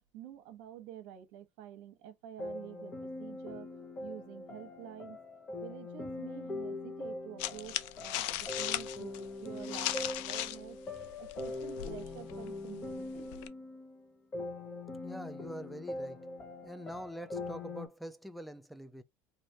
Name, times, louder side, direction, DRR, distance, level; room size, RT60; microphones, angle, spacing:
voice 1, 0.0-3.7 4.0-5.2 5.6-13.4, right 11 dB, 75° right, 0.9 m, -49 dB
sound 1, 2.4-17.9, left 2 dB, 25° left, 1.0 m, -42 dB
sound 2, 7.4-10.6 10.9-13.5, left 14 dB, 80° left, 0.4 m, -38 dB
voice 2, 15.0-16.3 16.6-19.0, right 1 dB, ahead, 0.5 m, -45 dB
3.2 x 2.6 x 2.7 m
cardioid pair, 125°, 6 cm